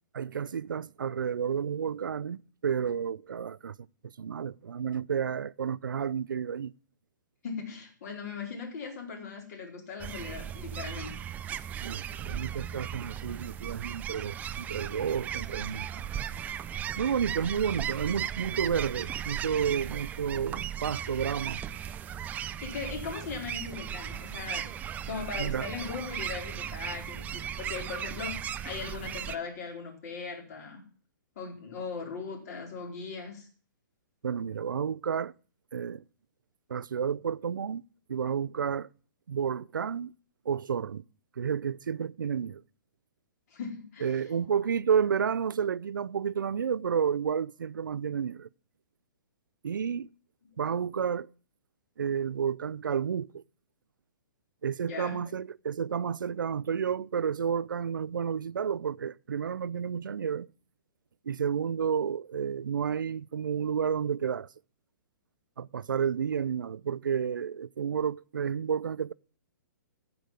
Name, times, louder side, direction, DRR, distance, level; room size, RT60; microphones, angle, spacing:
voice 1, 0.1-3.8 4.0-6.7 11.8-16.1 17.0-21.6 25.4-25.7 34.2-35.3 35.7-36.0 36.7-37.8 38.1-38.9 39.3-40.1 40.5-41.0 41.4-42.6 44.0-48.5 49.6-50.1 50.6-51.3 52.0-53.4 54.6-60.5 61.3-64.5 65.6-69.1, right 7 dB, 90° right, 0.4 m, -31 dB
voice 2, 7.4-11.2 17.4-17.5 22.6-24.7 25.1-30.8 31.4-33.5 43.5-44.1 54.8-55.2, left 5 dB, 55° left, 4.4 m, -39 dB
sound 1, 10.0-29.4, right 9 dB, 15° right, 0.4 m, -37 dB
14.5 x 5.2 x 7.8 m
hypercardioid pair, 140°, 10 cm